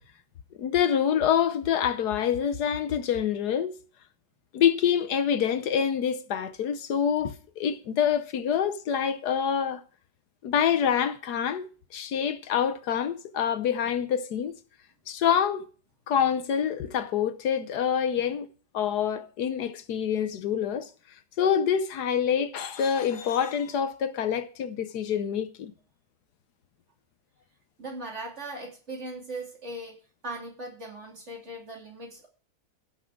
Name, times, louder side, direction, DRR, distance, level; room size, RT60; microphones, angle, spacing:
voice 1, 0.6-3.8 4.5-9.8 10.4-11.7 11.9-14.5 15.1-15.6 16.1-18.5 18.7-20.9 21.4-25.7, left 8 dB, 75° left, 1.4 m, -26 dB
voice 2, 27.8-30.0 30.2-32.3, right 2 dB, 45° right, 3.1 m, -39 dB
16.5 x 6.1 x 4.7 m
omnidirectional pair, 1.7 m